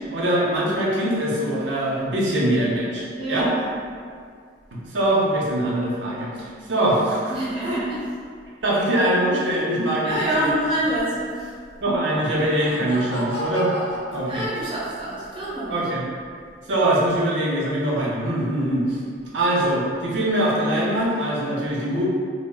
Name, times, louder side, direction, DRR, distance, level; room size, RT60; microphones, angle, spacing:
voice 1, 0.1-3.5 4.7-7.3 7.6-7.8 8.6-10.4 11.8-13.7 14.1-14.4 15.7-16.0 16.7-19.0 19.3-22.0, right 1 dB, 80° right, -4 dB, 0.6 m, -23 dB
voice 2, 3.2-3.7 7.3-8.1 10.0-11.6 14.2-15.9, right 1 dB, 30° right, -8 dB, 0.5 m, -27 dB
Laughter, 11.9-15.0, equal, 65° left, 0.5 m, -34 dB
2.2 x 2.1 x 3.5 m, 2.2 s
head